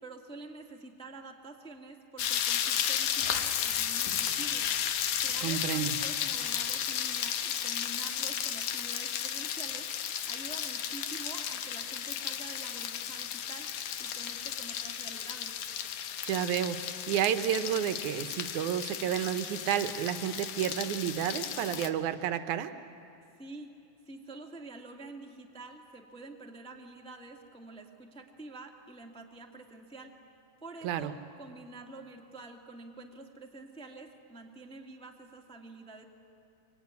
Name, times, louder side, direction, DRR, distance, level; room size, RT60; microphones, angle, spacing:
voice 1, 0.0-4.7 5.2-13.7 14.0-15.5 23.4-23.7 24.0-30.1 30.6-36.0, right 3 dB, 5° left, 2 dB, 1.1 m, -47 dB
sound 1, 2.2-21.9, left 9 dB, 70° left, 2.5 m, -34 dB
voice 2, 5.4-6.0 16.2-22.7 30.8-31.1, right 10 dB, 80° right, 10 dB, 2.3 m, -31 dB
25.0 x 25.0 x 9.6 m, 2.7 s
omnidirectional pair, 3.5 m